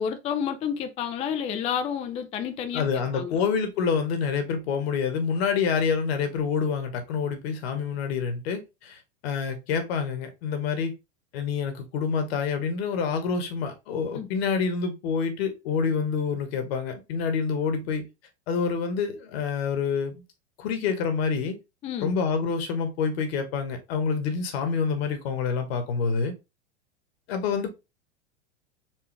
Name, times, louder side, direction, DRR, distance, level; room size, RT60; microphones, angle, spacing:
voice 1, 0.0-2.9 3.1-3.4 14.1-14.3 21.8-22.1, left 8 dB, 20° left, 0.3 m, -30 dB
voice 2, 2.7-10.9 11.3-18.1 18.5-20.1 20.6-21.6 22.0-26.3 27.3-27.7, left 5 dB, 60° left, 1.3 m, -27 dB
4.6 x 2.7 x 3.3 m
hypercardioid pair, 100°, 34 cm